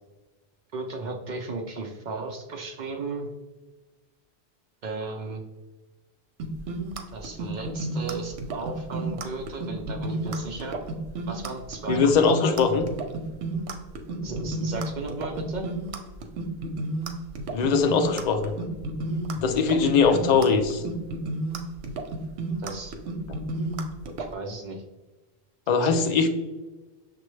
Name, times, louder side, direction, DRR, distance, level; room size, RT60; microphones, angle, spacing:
voice 1, 0.7-3.3 4.8-5.4 7.1-10.8 11.3-12.5 14.2-15.7 20.0-20.2 22.6-22.9 24.3-24.8 25.8-26.2, right 3 dB, 60° right, 3 dB, 0.5 m, -35 dB
sound 1, 6.4-24.3, right 2 dB, 90° right, 0.9 m, -32 dB
voice 2, 11.9-12.8 17.5-18.5 19.4-20.8 25.7-26.3, left 5 dB, 55° left, 5 dB, 0.5 m, -21 dB
6.1 x 2.2 x 3.1 m, 1.2 s
omnidirectional pair, 1.1 m